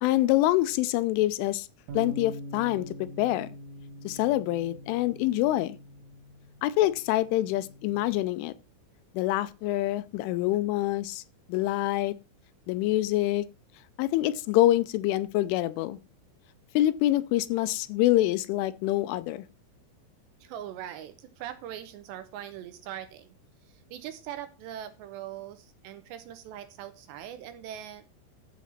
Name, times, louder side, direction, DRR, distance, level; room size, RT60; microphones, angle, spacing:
voice 1, 0.0-1.7 1.9-3.5 4.0-5.8 6.6-8.5 9.1-11.2 11.5-12.1 12.7-13.4 14.0-16.0 16.7-19.4, left 15 dB, 85° left, 3.1 m, -26 dB
sound 1, 1.9-8.1, right 1 dB, 60° right, 2.3 m, -44 dB
voice 2, 20.4-23.3 23.6-28.1, right 11 dB, 80° right, 2.7 m, -41 dB
14.0 x 6.2 x 4.3 m
omnidirectional pair, 5.6 m